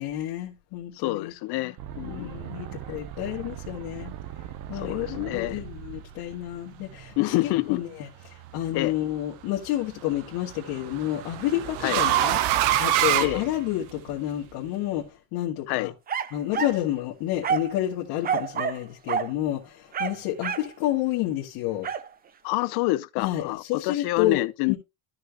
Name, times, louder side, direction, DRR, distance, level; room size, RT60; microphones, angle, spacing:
voice 1, 0.0-1.3 1.6-1.7 2.0-4.1 4.7-15.9 16.3-21.9 23.2-24.8, left 13 dB, 90° left, 2.2 m, -30 dB
voice 2, 1.0-2.4 4.8-5.6 7.2-7.8 8.7-9.0 11.8-12.0 13.2-13.4 15.7-15.9 22.4-24.7, left 19 dB, 70° left, 0.8 m, -27 dB
sound 1, 1.8-7.8, right 11 dB, 50° right, 1.0 m, -40 dB
sound 2, 8.2-8.7 10.1-14.1, right 12 dB, 85° right, 1.0 m, -25 dB
sound 3, 16.1-16.8 17.4-17.8 18.2-18.8 19.1-19.3 19.9-20.7 21.8-22.1, right 7 dB, 25° right, 0.6 m, -28 dB
13.0 x 6.2 x 3.0 m
cardioid pair, 170°, 39 cm